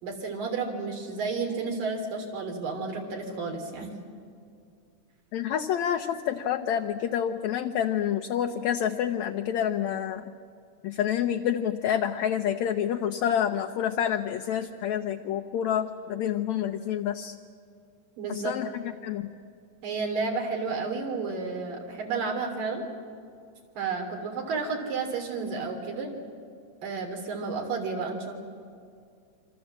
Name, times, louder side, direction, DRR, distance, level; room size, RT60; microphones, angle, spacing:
voice 1, 0.0-3.9 18.2-18.5 19.8-22.9 23.8-26.1 26.8-28.3, right 4 dB, 75° right, 2 dB, 4.9 m, -31 dB
voice 2, 5.3-10.3 10.8-17.4 18.3-19.3, left 9 dB, 70° left, 5 dB, 1.8 m, -28 dB
27.0 x 26.0 x 7.6 m, 2.3 s
omnidirectional pair, 4.0 m